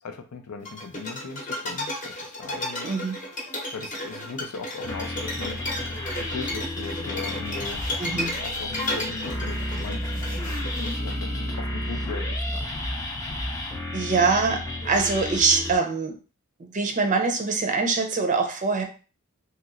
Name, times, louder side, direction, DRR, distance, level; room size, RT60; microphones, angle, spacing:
voice 1, 0.0-2.9 3.7-5.6 6.2-7.8 8.4-12.7, left 4 dB, 85° left, 6 dB, 0.5 m, -38 dB
sound 1, 0.7-11.1, left 1 dB, 35° left, 0.8 m, -33 dB
voice 2, 2.8-3.2 8.0-8.3 13.9-16.2 16.6-18.8, right 4 dB, 35° right, 4 dB, 0.5 m, -24 dB
sound 2, 4.8-15.8, left 1 dB, 15° left, 0.4 m, -31 dB
2.9 x 2.9 x 2.4 m, 0.34 s
head